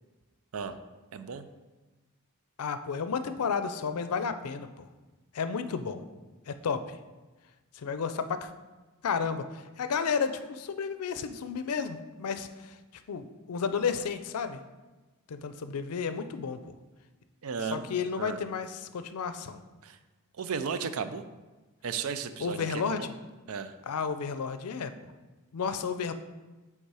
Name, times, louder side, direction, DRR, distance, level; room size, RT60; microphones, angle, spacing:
voice 1, 1.1-1.5 17.4-18.4 19.8-20.0 20.4-21.2 21.8-23.1 23.5-23.8, right 6 dB, 75° right, 11 dB, 0.5 m, -35 dB
voice 2, 2.6-4.9 5.3-6.0 6.5-7.0 7.7-8.5 9.0-12.7 13.1-14.6 15.3-16.6 17.7-19.6 22.4-23.0 23.9-24.9 25.5-26.1, left 6 dB, 90° left, 10 dB, 0.5 m, -32 dB
8.0 x 3.6 x 4.8 m, 1.2 s
head